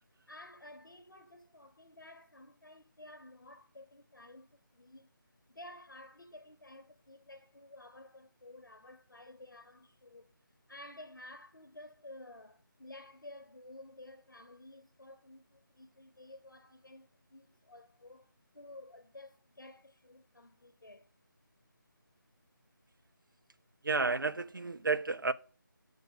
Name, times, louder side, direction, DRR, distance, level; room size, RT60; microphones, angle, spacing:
voice 1, 0.3-5.1 5.5-21.1, left 1 dB, 65° left, 0.9 m, -53 dB
voice 2, 23.8-25.3, right 4 dB, 70° right, 0.6 m, -31 dB
7.8 x 3.5 x 6.0 m
figure-of-eight pair, 160°, 11 cm